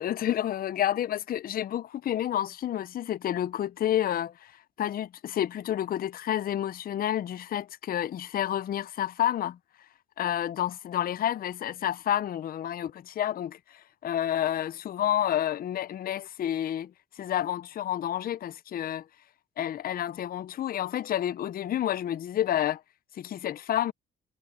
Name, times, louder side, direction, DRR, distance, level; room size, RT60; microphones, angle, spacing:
voice 1, 0.0-4.5 4.8-9.6 10.2-16.9 17.2-19.0 19.6-22.8 23.2-23.9, left 11 dB, 50° left, 0.5 m, -29 dB
cardioid pair, 90°, 20 cm